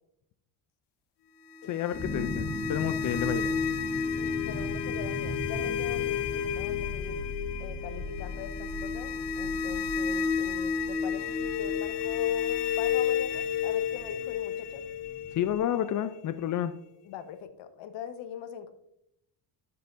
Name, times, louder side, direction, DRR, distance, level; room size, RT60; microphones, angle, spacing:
sound 1, 1.5-16.4, left 7 dB, 70° left, 1.4 m, -31 dB
voice 1, 1.7-3.6 15.3-16.7, left 10 dB, 45° left, 10 dB, 0.5 m, -30 dB
sound 2, 1.9-15.6, left 2 dB, 15° left, 2.4 m, -40 dB
voice 2, 4.2-7.3 7.6-14.8 17.0-18.7, left 8 dB, 90° left, 9 dB, 1.1 m, -42 dB
13.5 x 6.7 x 2.6 m, 0.81 s
cardioid pair, 145°, 43 cm